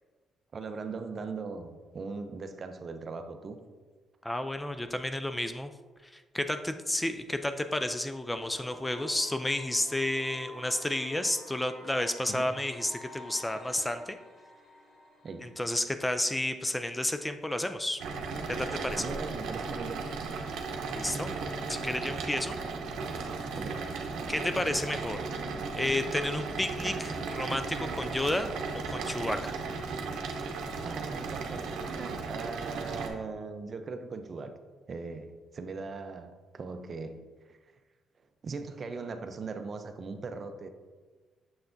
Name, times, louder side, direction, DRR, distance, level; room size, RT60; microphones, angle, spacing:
voice 1, 0.5-3.6 12.3-12.5 15.2-15.6 18.9-20.1 23.6-24.0 30.7-34.5 34.9-37.2 37.5-37.7 38.4-40.7, right 4 dB, 45° right, 8 dB, 0.5 m, -39 dB
voice 2, 4.2-5.7 6.0-14.2 15.4-18.0 18.5-19.0 20.9-21.3 21.7-22.6 24.3-25.2 25.7-29.6, left 1 dB, 10° left, 9 dB, 0.3 m, -31 dB
sound 1, 8.3-16.3, left 1 dB, 65° left, 1.7 m, -50 dB
sound 2, 18.0-33.1, right 4 dB, 80° right, 0.7 m, -36 dB
6.8 x 5.8 x 2.6 m, 1.4 s
cardioid pair, 90°, 0 cm